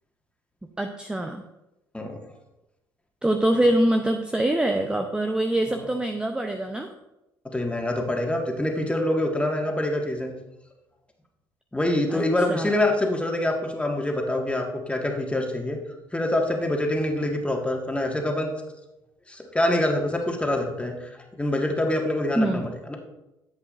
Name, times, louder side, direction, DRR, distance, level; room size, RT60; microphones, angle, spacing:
voice 1, 0.8-1.4 3.2-6.9 12.1-12.2 12.5-12.7 22.4-22.7, right 1 dB, 10° right, 5 dB, 0.6 m, -24 dB
voice 2, 7.4-10.3 11.7-15.8 16.1-18.5 19.3-23.0, left 1 dB, 10° left, 1 dB, 1.7 m, -25 dB
10.5 x 7.9 x 2.5 m, 0.94 s
hypercardioid pair, 55°, 11 cm